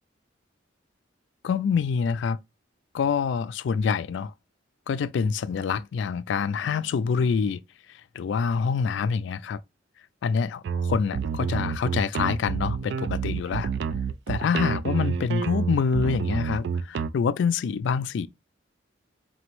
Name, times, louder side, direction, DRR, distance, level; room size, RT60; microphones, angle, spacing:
voice 1, 1.4-2.4 2.9-4.3 4.9-7.6 7.9-9.6 10.2-13.7 14.3-18.3, left 6 dB, 65° left, 0.3 m, -26 dB
sound 1, 10.6-17.1, right 6 dB, 60° right, 0.3 m, -28 dB
4.2 x 3.0 x 3.0 m
head